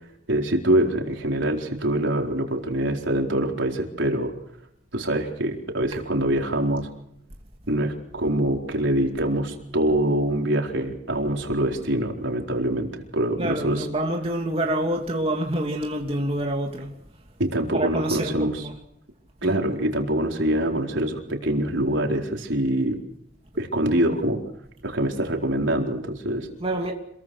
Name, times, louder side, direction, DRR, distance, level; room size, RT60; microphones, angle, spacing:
voice 1, 0.3-4.3 4.9-6.9 7.7-13.9 17.4-18.7 19.4-23.0 23.6-24.4 24.8-26.5, right 1 dB, 85° right, 4.3 m, -24 dB
voice 2, 13.4-16.9 17.7-18.8 19.4-19.6 26.6-26.9, right 1 dB, 30° right, 2.7 m, -27 dB
27.0 x 22.5 x 6.3 m
head